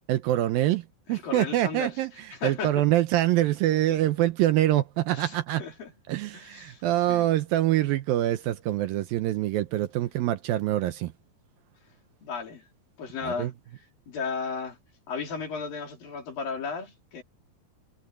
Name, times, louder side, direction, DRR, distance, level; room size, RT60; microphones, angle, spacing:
voice 1, 0.1-5.6 6.1-11.1 13.2-13.5, right 14 dB, 75° right, 2.3 m, -25 dB
voice 2, 1.1-1.9 2.3-2.8 5.1-5.9 6.3-7.3 12.2-12.7 13.0-13.5 14.1-14.8 15.1-17.2, left 5 dB, 60° left, 5.4 m, -35 dB
omnidirectional pair, 4.6 m